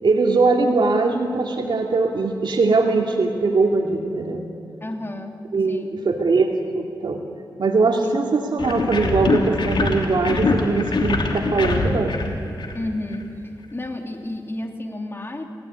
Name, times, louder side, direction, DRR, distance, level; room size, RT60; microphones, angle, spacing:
voice 1, 0.0-4.4 5.5-6.5 6.7-7.2 7.6-12.2, right 3 dB, 70° right, 2 dB, 2.6 m, -21 dB
voice 2, 4.8-5.4 5.7-6.0 8.0-8.2 12.7-13.3 13.7-15.4, left 1 dB, 30° left, 3 dB, 3.3 m, -31 dB
sound 1, 8.6-13.2, left 3 dB, 75° left, 3.1 m, -23 dB
29.5 x 17.5 x 9.7 m, 2.8 s
wide cardioid pair, 80°, 8 cm